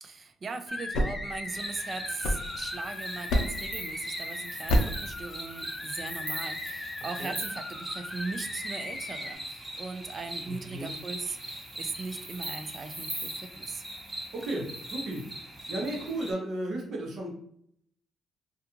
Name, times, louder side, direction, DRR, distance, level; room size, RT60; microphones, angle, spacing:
voice 1, 0.0-13.8, right 4 dB, 40° right, 8 dB, 0.3 m, -39 dB
sound 1, 0.7-2.9 3.3-3.8 4.7-5.1, equal, 85° left, 0.4 m, -29 dB
sound 2, 0.7-9.4, left 2 dB, 25° left, 0.5 m, -39 dB
sound 3, 1.5-16.3, right 1 dB, 20° right, 0.9 m, -40 dB
voice 2, 10.5-10.9 14.3-15.2 15.7-17.3, right 1 dB, 65° right, 0 dB, 0.8 m, -34 dB
2.4 x 2.3 x 2.9 m, 0.70 s
cardioid pair, 90°, 0 cm